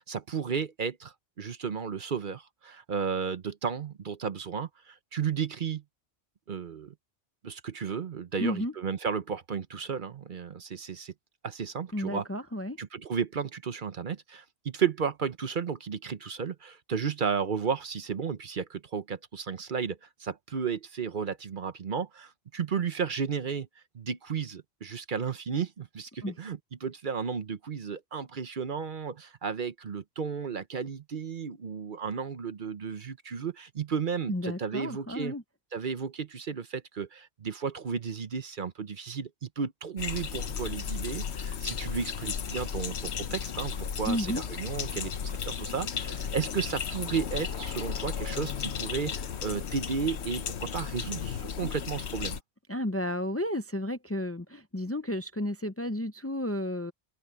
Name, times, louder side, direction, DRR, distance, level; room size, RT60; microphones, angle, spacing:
voice 1, 0.0-5.8 6.5-6.9 7.4-11.1 11.4-12.3 12.8-23.7 23.9-35.3 35.7-52.4, right 6 dB, 55° right, 0.9 m, -33 dB
voice 2, 8.4-8.7 11.9-12.8 26.2-26.4 34.3-35.4 44.1-44.4 52.7-56.9, left 1 dB, 15° left, 0.6 m, -32 dB
sound 1, 40.0-52.4, left 7 dB, 85° left, 1.2 m, -34 dB
omnidirectional pair, 1.1 m